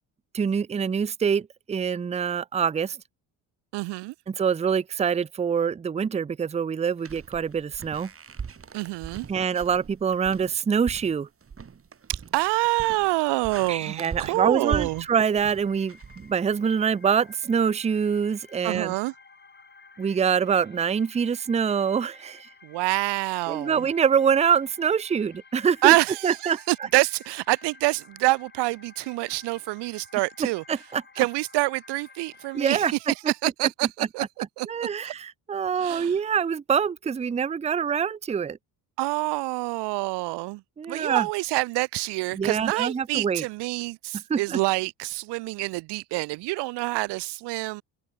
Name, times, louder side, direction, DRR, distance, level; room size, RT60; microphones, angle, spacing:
voice 1, 0.3-3.0 4.3-8.1 9.3-11.3 13.7-18.9 20.0-22.5 23.5-25.9 26.2-26.6 30.7-31.2 32.5-32.9 33.2-33.3 34.7-38.6 40.8-41.3 42.3-43.4 44.3-44.6, right 7 dB, 15° right, 0.5 m, -25 dB
voice 2, 3.7-4.1 8.7-9.3 12.1-15.0 18.6-19.1 22.6-23.8 25.8-30.6 31.2-33.0 33.3-34.7 35.0-35.1 35.8-36.2 39.0-40.6 40.9-47.8, right 22 dB, 70° right, 0.6 m, -26 dB
sound 1, 7.0-16.8, right 6 dB, 30° right, 2.3 m, -39 dB
sound 2, 14.6-32.7, left 4 dB, 25° left, 2.8 m, -53 dB
supercardioid pair, 85°, 43 cm